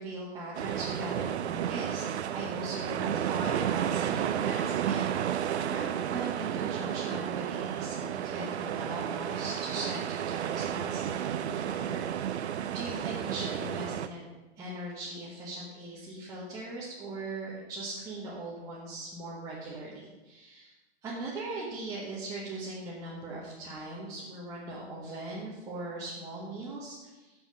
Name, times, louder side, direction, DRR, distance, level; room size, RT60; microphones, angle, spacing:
voice 1, 0.0-2.0 2.3-14.3 14.6-20.7 21.0-27.3, right 2 dB, 10° right, -8 dB, 1.2 m, -40 dB
sound 1, 0.5-14.1, right 9 dB, 80° right, 0.6 m, -32 dB
7.0 x 6.5 x 6.3 m, 1.1 s
hypercardioid pair, 160°, 33 cm